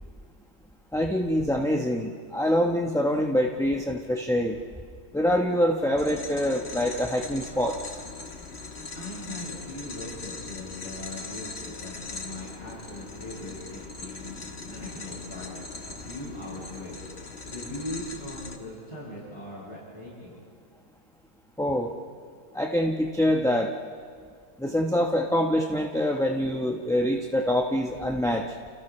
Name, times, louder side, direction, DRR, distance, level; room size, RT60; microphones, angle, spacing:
voice 1, 0.9-4.6 5.1-8.0 21.6-21.9 22.5-23.7 24.6-28.4, equal, 5° left, 0 dB, 0.9 m, -25 dB
sound 1, 6.0-18.6, left 3 dB, 50° left, 1.6 m, -40 dB
voice 2, 8.9-15.5 15.8-17.0 17.5-20.4 25.9-26.1, left 1 dB, 20° left, -9 dB, 8.1 m, -40 dB
30.0 x 30.0 x 3.3 m, 2.1 s
omnidirectional pair, 1.5 m